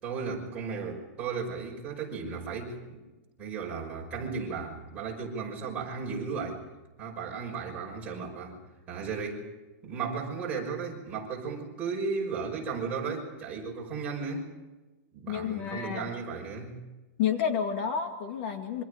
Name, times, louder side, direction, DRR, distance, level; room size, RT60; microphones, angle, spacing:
voice 1, 0.0-3.0 3.4-6.6 7.0-8.6 8.9-9.5 9.8-14.5 15.1-16.8, right 5 dB, 15° right, -3 dB, 5.7 m, -35 dB
voice 2, 15.3-16.0 17.2-18.8, left 8 dB, 45° left, 6 dB, 2.2 m, -30 dB
27.0 x 25.0 x 5.1 m, 1.1 s
supercardioid pair, 175°, 8 cm